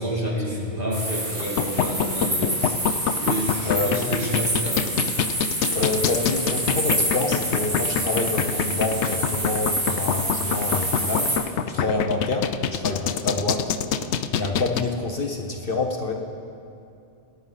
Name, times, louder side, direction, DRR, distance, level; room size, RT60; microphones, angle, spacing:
voice 1, 0.0-2.8 3.2-5.0 11.8-11.9, right 1 dB, 45° right, -6 dB, 3.4 m, -29 dB
sound 1, 0.9-11.4, right 1 dB, 75° right, 4.6 m, -27 dB
sound 2, 1.4-14.8, left 8 dB, 70° left, 0.9 m, -25 dB
voice 2, 3.6-4.0 5.7-11.4 11.7-13.7 14.4-16.1, left 3 dB, 50° left, 2 dB, 1.2 m, -27 dB
26.0 x 9.8 x 4.0 m, 2.5 s
omnidirectional pair, 1.2 m